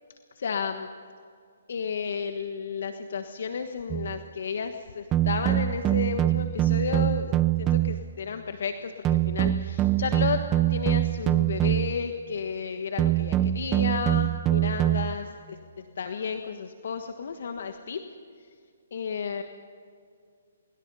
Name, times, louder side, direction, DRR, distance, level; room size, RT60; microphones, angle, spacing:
voice 1, 0.3-0.9 1.7-10.4 10.7-15.6 16.0-18.0 18.9-19.4, left 6 dB, 65° left, 7 dB, 1.4 m, -32 dB
sound 1, 3.9-4.2 5.1-8.1 9.0-12.0 13.0-15.2, right 14 dB, 20° right, 0.7 m, -24 dB
25.0 x 23.0 x 5.6 m, 2.3 s
hypercardioid pair, 145°, 0 cm